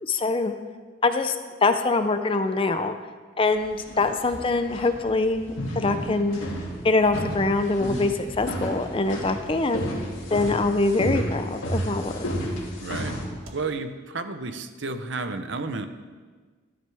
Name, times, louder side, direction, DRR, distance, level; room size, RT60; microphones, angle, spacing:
voice 1, 0.0-0.5 1.0-1.4 1.6-2.9 3.4-6.4 6.8-9.9 10.3-12.3, left 3 dB, 25° left, 8 dB, 0.5 m, -24 dB
sound 1, 3.6-13.2, equal, 70° left, 2.4 m, -32 dB
sound 2, 4.3-4.8 6.3-7.4 7.8-8.4 9.0-9.8 10.7-11.2 12.4-12.9 13.4-13.7, equal, 80° right, 1.7 m, -48 dB
voice 2, 12.8-13.1 13.5-15.9, right 3 dB, 55° right, 8 dB, 0.7 m, -31 dB
13.5 x 11.5 x 3.5 m, 1.4 s
head